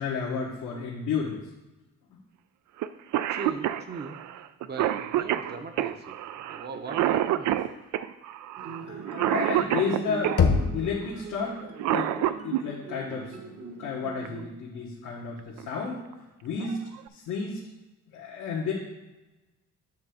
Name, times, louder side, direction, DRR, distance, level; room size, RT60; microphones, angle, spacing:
voice 1, 0.0-1.4 8.8-12.1 12.4-13.4 13.8-16.0 16.4-16.8 17.1-17.6 18.1-18.7, left 5 dB, 85° left, -5 dB, 1.5 m, -32 dB
Cough, 2.8-2.9 3.1-10.4 11.6-12.6 14.2-14.3 15.4-15.7 16.1-16.2 16.6-17.1, right 12 dB, 75° right, 0.5 m, -28 dB
voice 2, 3.3-4.2 4.6-6.2 6.5-7.7, right 4 dB, 35° right, 6 dB, 0.8 m, -39 dB
sound 1, 8.6-14.5, right 4 dB, 55° right, 1.3 m, -42 dB
Knock, 10.4-11.3, left 5 dB, 50° left, 1.0 m, -24 dB
8.7 x 3.4 x 6.4 m, 1.1 s
cardioid pair, 90°, 30 cm